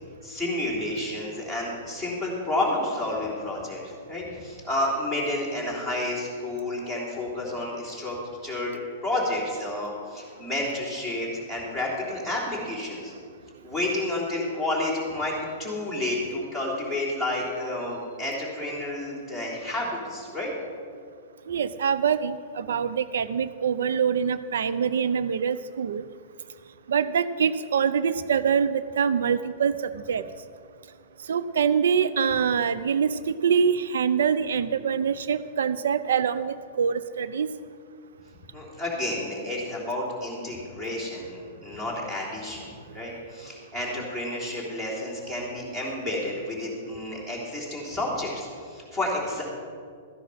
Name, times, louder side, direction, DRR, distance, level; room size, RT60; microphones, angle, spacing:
voice 1, 0.2-8.2 8.4-13.1 13.6-20.5 38.5-49.4, left 1 dB, 10° right, -4 dB, 3.4 m, -30 dB
voice 2, 21.5-26.0 26.9-30.2 31.3-37.5, right 7 dB, 85° right, 14 dB, 0.5 m, -25 dB
14.0 x 10.0 x 5.7 m, 2.3 s
hypercardioid pair, 165°, 0 cm